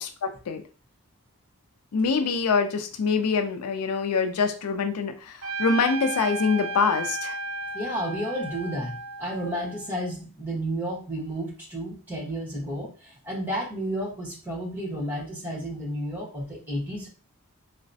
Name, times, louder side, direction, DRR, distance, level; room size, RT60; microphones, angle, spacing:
voice 1, 0.2-0.6 1.9-7.4, left 5 dB, 90° left, 7 dB, 0.4 m, -25 dB
Trumpet, 5.4-10.1, right 2 dB, 70° right, 0.5 m, -34 dB
voice 2, 7.7-17.1, right 1 dB, 10° right, -4 dB, 1.1 m, -32 dB
3.9 x 2.1 x 2.6 m, 0.37 s
head